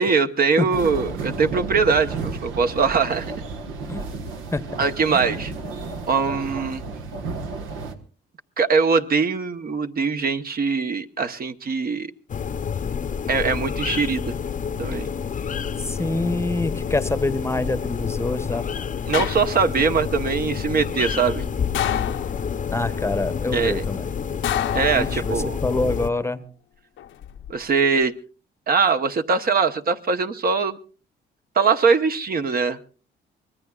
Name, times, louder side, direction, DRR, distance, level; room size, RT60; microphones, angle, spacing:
voice 1, 0.0-3.3 4.8-5.5 6.1-6.8 8.6-12.1 13.3-14.3 14.8-15.1 19.1-21.5 23.5-23.8 24.7-25.6 27.5-28.1 28.7-30.8 31.5-32.8, right 5 dB, 50° right, 8 dB, 1.0 m, -22 dB
sound 1, 0.7-8.0, right 4 dB, 90° right, 1.4 m, -32 dB
sound 2, 12.3-26.1, left 7 dB, 40° left, 0.7 m, -28 dB
voice 2, 15.8-18.7 22.7-24.1 24.9-26.4, left 2 dB, 15° left, 12 dB, 0.9 m, -26 dB
sound 3, 19.1-19.9 21.7-22.7 24.4-25.6 27.0-27.5, left 10 dB, 75° left, 0.8 m, -28 dB
24.5 x 20.0 x 2.4 m, 0.37 s
cardioid pair, 90°, 20 cm